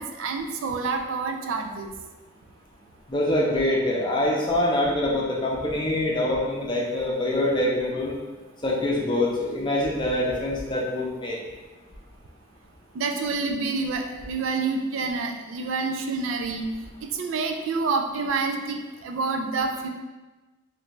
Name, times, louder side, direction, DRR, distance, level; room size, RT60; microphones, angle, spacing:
voice 1, 0.0-1.9 12.9-16.7 17.0-19.9, right 4 dB, 70° right, 5 dB, 0.3 m, -28 dB
voice 2, 3.1-8.1 8.6-11.4, left 1 dB, 25° left, -3 dB, 0.5 m, -25 dB
3.2 x 2.5 x 3.0 m, 1.2 s
head